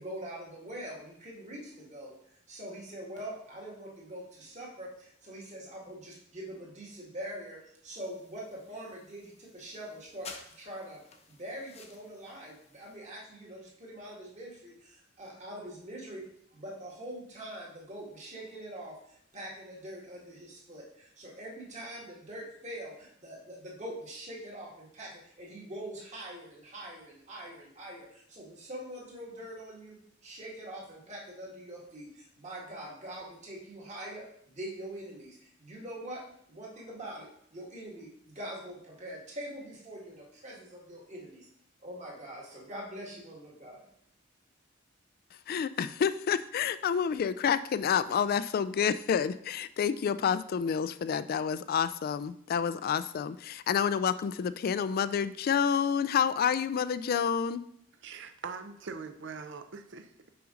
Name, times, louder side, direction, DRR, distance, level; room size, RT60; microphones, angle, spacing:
voice 1, 0.0-2.2 2.5-11.0 11.3-16.3 16.5-41.5 41.8-43.9, right 1 dB, 35° right, -3 dB, 1.8 m, -44 dB
sound 1, 7.9-13.0, left 4 dB, 35° left, 0.8 m, -53 dB
voice 2, 45.5-57.6, left 7 dB, 50° left, 15 dB, 0.3 m, -29 dB
voice 3, 58.0-60.3, right 5 dB, 65° right, 8 dB, 0.6 m, -42 dB
5.7 x 5.2 x 3.8 m, 0.69 s
head